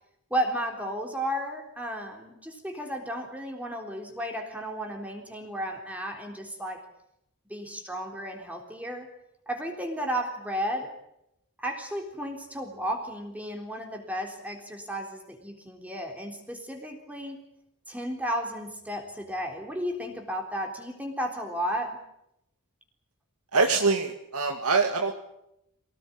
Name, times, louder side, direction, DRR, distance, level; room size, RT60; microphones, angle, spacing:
voice 1, 0.3-6.8 7.5-9.1 9.5-11.0 11.6-17.4 17.9-22.0, equal, 5° right, 2 dB, 3.7 m, -33 dB
voice 2, 23.5-25.1, right 4 dB, 80° right, 3 dB, 2.2 m, -24 dB
25.5 x 18.5 x 8.8 m, 0.80 s
head